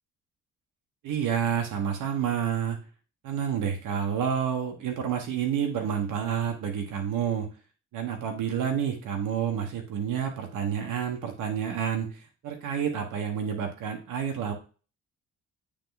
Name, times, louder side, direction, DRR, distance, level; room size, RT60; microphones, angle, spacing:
voice 1, 1.0-2.8 3.2-7.5 7.9-14.5, right 8 dB, 85° right, 3 dB, 1.5 m, -29 dB
8.6 x 3.7 x 4.1 m, 0.35 s
cardioid pair, 90°, 30 cm